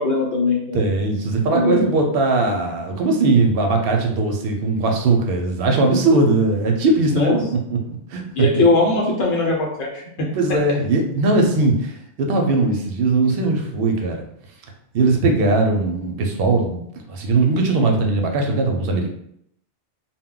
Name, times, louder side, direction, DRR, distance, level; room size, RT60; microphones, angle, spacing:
voice 1, 0.0-0.8 1.5-1.9 7.1-7.4 8.3-10.3, left 3 dB, 85° left, -1 dB, 1.0 m, -20 dB
voice 2, 0.7-7.4 7.7-8.5 10.3-14.2 14.9-16.8 17.1-19.1, right 3 dB, 65° right, 2 dB, 0.7 m, -19 dB
2.2 x 2.1 x 3.7 m, 0.73 s
omnidirectional pair, 1.1 m